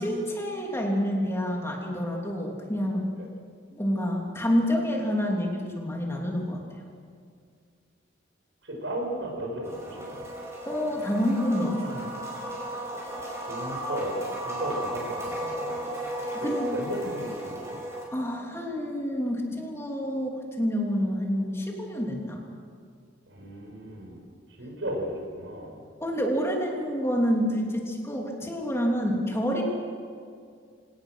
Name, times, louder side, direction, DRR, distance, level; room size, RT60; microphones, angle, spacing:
voice 1, 0.0-3.1 3.7-6.6 10.6-12.1 16.3-16.8 18.1-22.4 26.0-29.6, equal, 15° left, 0 dB, 3.2 m, -28 dB
voice 2, 8.6-10.2 13.5-17.8 23.3-24.2 24.6-25.8, right 1 dB, 85° right, 1 dB, 6.1 m, -35 dB
sound 1, 9.6-18.1, right 1 dB, 15° right, 5.4 m, -34 dB
26.0 x 18.5 x 6.5 m, 2.2 s
head